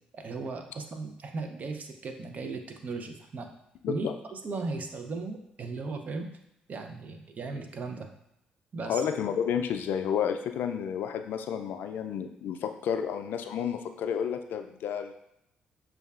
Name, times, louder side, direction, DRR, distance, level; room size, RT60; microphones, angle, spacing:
voice 1, 0.1-3.5 3.9-6.3 6.7-8.1 8.7-9.0, right 3 dB, 50° right, 5 dB, 0.6 m, -37 dB
voice 2, 3.8-4.1 8.9-15.1, left 8 dB, 70° left, 7 dB, 0.3 m, -31 dB
6.3 x 2.3 x 2.4 m, 0.81 s
supercardioid pair, 60°, 3 cm